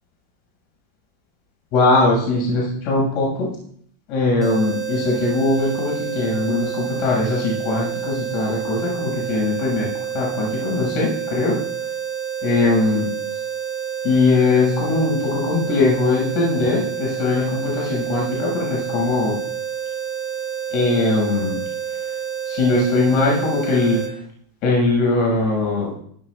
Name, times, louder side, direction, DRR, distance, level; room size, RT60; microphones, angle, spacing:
voice 1, 1.7-3.5 4.1-11.6 12.4-13.1 14.0-19.4 20.7-21.6 22.5-24.0 24.6-25.9, left 3 dB, 50° left, -3 dB, 7.1 m, -20 dB
sound 1, 4.4-24.1, right 8 dB, 20° right, 2.1 m, -29 dB
16.5 x 14.5 x 2.6 m, 0.62 s
supercardioid pair, 140°, 0 cm